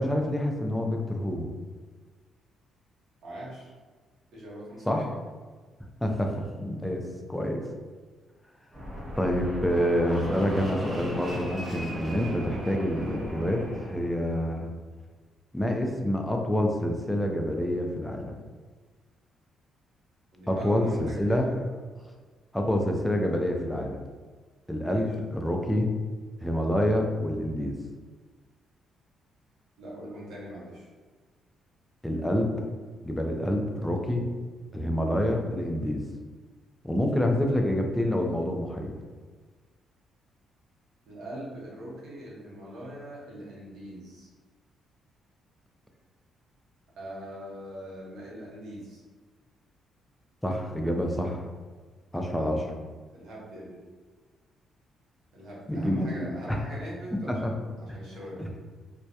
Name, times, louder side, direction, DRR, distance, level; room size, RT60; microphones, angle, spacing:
voice 1, 0.0-1.5 4.9-5.1 6.0-7.0 7.3-7.6 9.2-14.7 15.5-18.3 20.5-21.5 22.5-24.0 24.7-25.9 26.4-27.7 32.0-32.7 33.0-34.3 34.7-36.0 36.8-38.9 50.4-51.4 52.1-52.6 55.7-56.6 57.3-57.5 58.4-58.5, left 1 dB, 5° left, 2 dB, 0.4 m, -27 dB
voice 2, 3.2-3.7 4.3-5.1 20.3-22.0 24.8-25.0 29.8-30.9 41.1-44.3 47.0-49.0 52.3-52.8 53.1-53.8 55.3-58.5, right 1 dB, 75° right, -6 dB, 0.9 m, -42 dB
Fixed-wing aircraft airplane, 8.7-14.4, equal, 35° right, 0.6 m, -36 dB
2.2 x 2.1 x 2.7 m, 1.4 s
cardioid pair, 90°, 0 cm